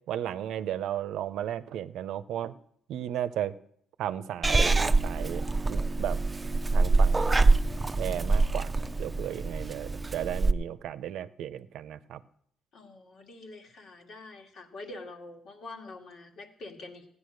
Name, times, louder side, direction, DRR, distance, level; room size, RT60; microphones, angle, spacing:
voice 1, 0.1-2.5 2.9-3.5 4.0-6.2 6.7-7.4 8.0-8.7 9.0-12.2, right 11 dB, 80° right, 13 dB, 0.7 m, -34 dB
Purr / Meow, 4.4-10.5, right 3 dB, 20° right, 0.7 m, -25 dB
voice 2, 12.7-17.1, left 2 dB, 65° left, 3 dB, 2.2 m, -45 dB
16.0 x 9.9 x 6.5 m, 0.70 s
cardioid pair, 90°, 0 cm